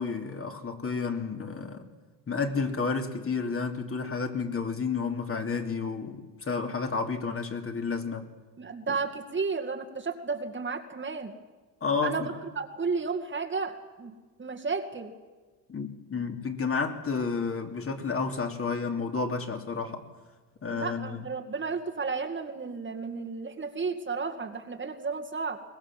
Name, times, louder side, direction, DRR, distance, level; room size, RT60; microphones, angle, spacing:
voice 1, 0.0-1.9 2.3-8.3 8.9-9.0 11.8-12.3 15.7-20.0 20.6-21.3, left 4 dB, 30° left, 4 dB, 2.9 m, -31 dB
voice 2, 8.6-11.3 12.0-15.1 20.7-25.6, right 4 dB, 25° right, 3 dB, 2.2 m, -33 dB
23.0 x 19.5 x 7.6 m, 1.3 s
supercardioid pair, 90°, 47 cm